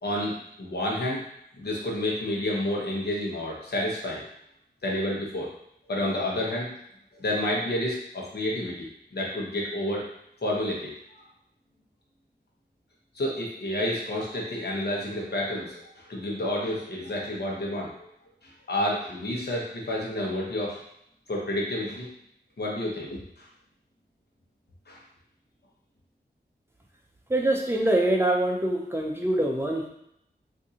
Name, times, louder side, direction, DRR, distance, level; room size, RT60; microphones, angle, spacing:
voice 1, 0.0-1.2 1.5-4.2 4.8-5.5 5.9-6.7 7.1-10.0 10.4-11.2 13.1-18.1 18.4-20.8 21.3-22.1 22.6-23.4 24.9-25.0, left 1 dB, 70° left, -3 dB, 1.0 m, -30 dB
voice 2, 27.3-29.9, right 1 dB, 15° right, 0 dB, 0.5 m, -24 dB
3.6 x 2.6 x 2.8 m, 0.76 s
wide cardioid pair, 90°, 17 cm